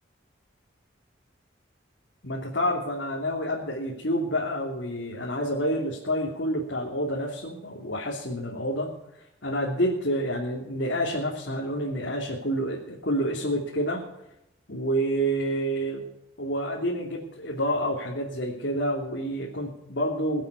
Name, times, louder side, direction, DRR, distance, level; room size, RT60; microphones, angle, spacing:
voice 1, 2.2-14.0 14.7-16.0 16.4-20.4, equal, 80° left, -3 dB, 3.0 m, -28 dB
22.0 x 8.3 x 7.0 m, 0.85 s
head